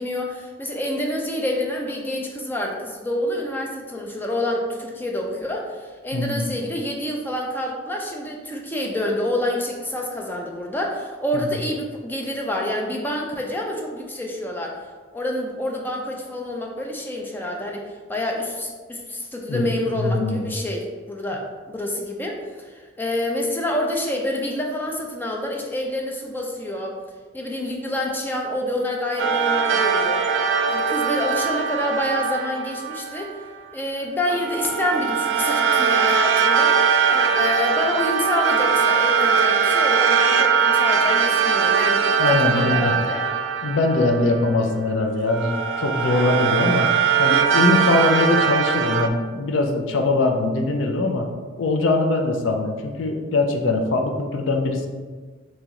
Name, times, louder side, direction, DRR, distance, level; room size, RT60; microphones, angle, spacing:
voice 1, 0.0-14.8 15.1-27.0 27.3-30.3 30.7-33.4 33.7-43.4, left 1 dB, 10° left, 0 dB, 0.4 m, -27 dB
voice 2, 6.1-6.4 11.3-11.5 19.5-19.7 20.0-20.5 42.2-42.9 43.6-46.9 47.2-51.3 51.6-54.9, left 2 dB, 85° left, 4 dB, 0.5 m, -22 dB
sound 1, 29.2-33.4 34.3-44.7 45.3-49.1, right 6 dB, 70° right, 0.3 m, -21 dB
3.0 x 2.9 x 3.6 m, 1.4 s
head